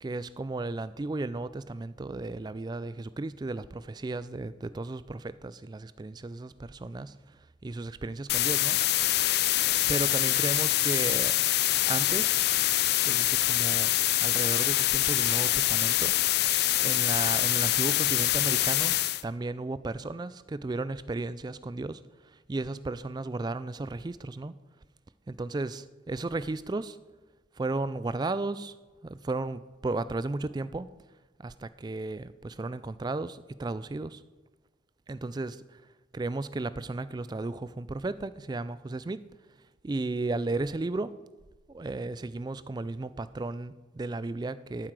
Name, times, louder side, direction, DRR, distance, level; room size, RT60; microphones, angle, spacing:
voice 1, 0.0-7.4 7.6-8.8 9.7-11.4 11.9-12.4 13.0-13.9 14.2-16.1 16.8-18.9 19.2-24.5 25.3-27.0 27.6-28.7 29.0-30.9 31.4-34.2 35.1-35.8 36.1-39.2 39.8-41.1 41.7-44.9, right 2 dB, 20° right, 15 dB, 0.3 m, -34 dB
sound 1, 8.3-19.2, left 15 dB, 55° left, 0.4 m, -25 dB
13.0 x 7.6 x 4.8 m, 1.2 s
head